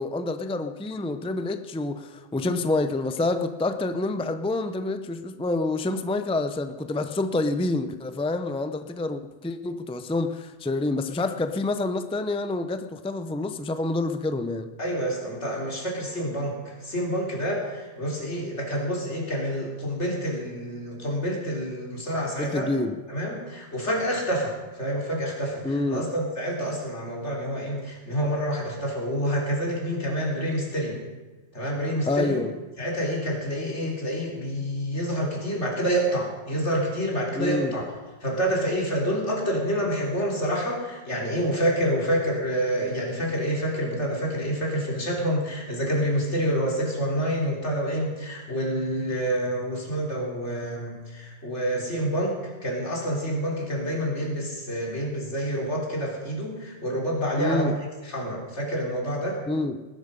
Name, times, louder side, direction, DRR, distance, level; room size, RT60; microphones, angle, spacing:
voice 1, 0.0-14.7 22.4-23.0 25.6-26.1 32.1-32.5 37.4-37.8 57.4-57.8 59.5-59.9, left 2 dB, 5° left, 9 dB, 0.5 m, -27 dB
voice 2, 14.8-22.7 23.1-31.0 31.5-32.4 32.8-37.8 38.2-57.7 58.0-59.4, equal, 75° left, -1 dB, 3.9 m, -28 dB
20.0 x 10.5 x 5.4 m, 1.2 s
omnidirectional pair, 1.2 m